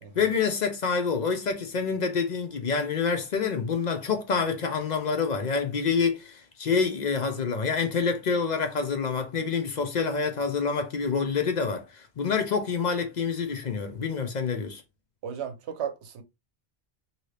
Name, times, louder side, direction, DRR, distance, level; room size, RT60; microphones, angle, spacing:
voice 1, 0.2-14.8, left 5 dB, 50° left, 0.6 m, -27 dB
voice 2, 15.2-16.2, right 8 dB, 90° right, 0.9 m, -35 dB
2.8 x 2.7 x 3.1 m
omnidirectional pair, 1.1 m